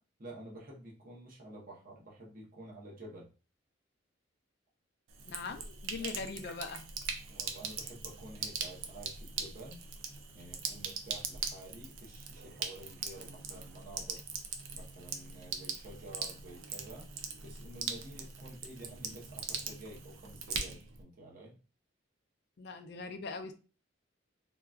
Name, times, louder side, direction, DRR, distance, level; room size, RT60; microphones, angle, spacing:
voice 1, 0.2-3.3 5.9-6.3 7.3-9.8 10.3-14.2 14.7-17.1 17.4-21.6, right 1 dB, 45° right, -3 dB, 0.8 m, -50 dB
Sink (filling or washing), 5.1-21.0, right 6 dB, 75° right, 0.5 m, -41 dB
voice 2, 5.3-7.0 22.6-23.5, left 4 dB, 55° left, 6 dB, 0.4 m, -41 dB
3.8 x 2.3 x 2.3 m, 0.34 s
head